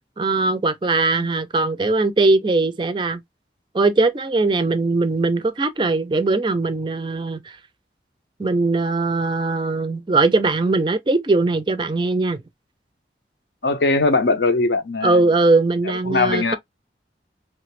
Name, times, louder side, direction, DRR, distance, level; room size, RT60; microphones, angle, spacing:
voice 1, 0.2-3.2 3.7-7.6 8.4-12.4 15.0-16.6, right 3 dB, 25° right, 0.4 m, -20 dB
voice 2, 13.6-15.3 15.9-16.6, left 3 dB, 75° left, 0.7 m, -20 dB
3.2 x 2.5 x 3.2 m
head